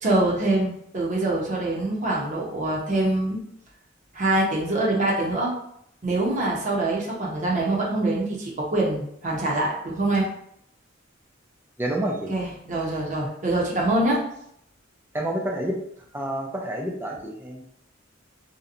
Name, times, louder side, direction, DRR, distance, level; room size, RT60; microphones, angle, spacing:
voice 1, 0.0-3.4 4.1-5.5 6.0-10.3 12.3-14.2, right 2 dB, 40° right, -4 dB, 0.7 m, -24 dB
voice 2, 11.8-12.3 15.1-15.8 16.1-17.6, right 1 dB, 10° right, 0 dB, 0.4 m, -28 dB
2.8 x 2.1 x 2.5 m, 0.72 s
head